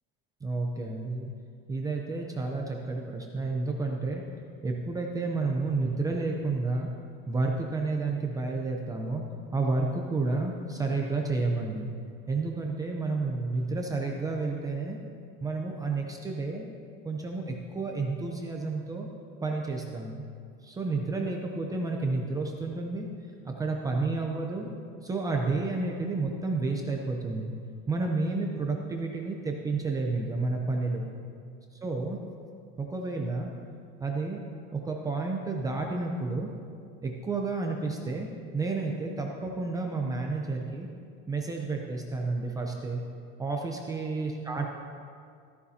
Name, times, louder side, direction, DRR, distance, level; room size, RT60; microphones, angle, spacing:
voice 1, 0.4-1.3 1.7-4.2 4.6-6.9 7.3-9.2 9.5-11.9 12.3-15.0 15.4-16.6 17.0-19.1 19.4-20.2 20.6-23.1 23.4-24.7 25.0-27.5 27.9-31.0 31.7-32.2 32.8-33.5 34.0-34.4 34.7-36.5 37.0-38.3 38.5-40.9 41.3-43.0 43.4-44.7, right 3 dB, 10° right, 0 dB, 0.6 m, -30 dB
14.0 x 14.0 x 2.8 m, 2.3 s
cardioid pair, 175°, 29 cm